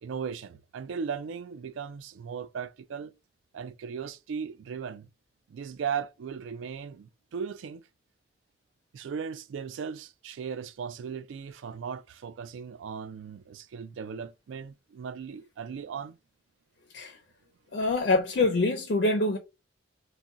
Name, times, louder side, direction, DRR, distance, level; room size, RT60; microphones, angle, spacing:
voice 1, 0.0-3.1 3.5-5.1 5.5-7.8 8.9-16.2, right 6 dB, 90° right, 0.3 m, -37 dB
voice 2, 17.7-19.4, left 2 dB, 55° left, 0.4 m, -25 dB
3.8 x 2.1 x 2.3 m
head